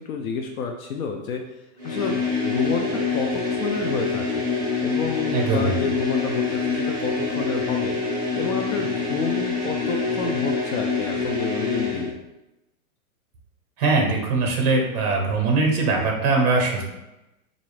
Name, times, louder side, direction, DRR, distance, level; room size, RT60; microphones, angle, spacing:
voice 1, 0.0-1.4 1.8-4.4 4.8-8.0 8.4-12.2, left 5 dB, 70° left, 4 dB, 0.5 m, -29 dB
sound 1, 1.8-12.1, left 4 dB, 5° left, 0.4 m, -26 dB
voice 2, 5.3-5.7 13.8-16.8, right 3 dB, 30° right, 1 dB, 0.7 m, -21 dB
3.8 x 2.6 x 3.2 m, 0.95 s
supercardioid pair, 170°, 44 cm